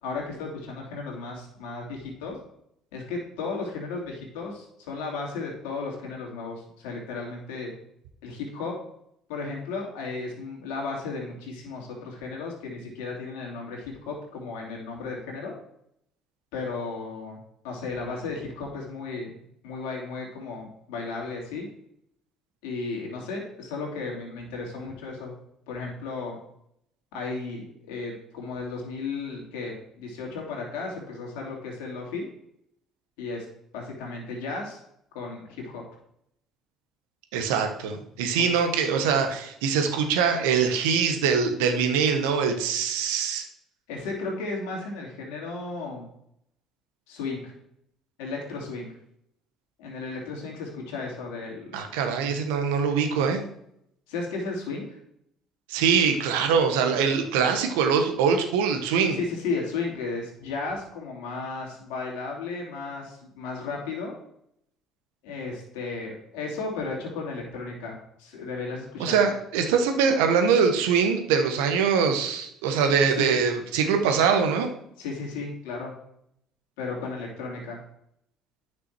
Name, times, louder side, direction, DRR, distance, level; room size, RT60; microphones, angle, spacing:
voice 1, 0.0-2.4 2.9-7.7 8.2-8.7 9.3-15.5 16.5-17.4 17.6-19.3 19.6-21.7 22.6-25.3 25.7-26.4 27.1-32.3 33.2-33.5 33.7-34.8 35.1-35.8 38.4-38.5 43.9-46.1 47.1-47.5 48.2-48.9 49.8-51.7 54.1-55.0 59.1-64.1 65.2-69.3 72.9-73.4 75.0-75.9 76.8-77.8, left 4 dB, 75° left, -1 dB, 2.8 m, -34 dB
voice 2, 37.3-43.4 51.7-53.4 55.7-59.2 69.0-74.7, right 6 dB, 80° right, 5 dB, 1.2 m, -23 dB
9.5 x 6.0 x 4.6 m, 0.74 s
hypercardioid pair, 60°, 0 cm